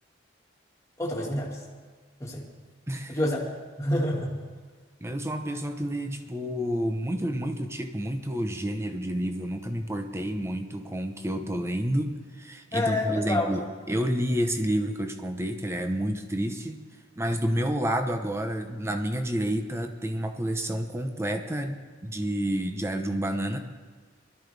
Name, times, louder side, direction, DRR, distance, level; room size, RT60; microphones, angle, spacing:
voice 1, 1.0-1.6 2.2-2.5 3.1-3.4 3.8-4.4 12.7-13.5, left 1 dB, 15° left, -3 dB, 2.1 m, -27 dB
voice 2, 2.9-3.2 5.0-13.6 13.9-16.8 17.2-23.6, equal, 15° right, 6 dB, 0.9 m, -29 dB
21.0 x 13.0 x 3.4 m, 1.5 s
head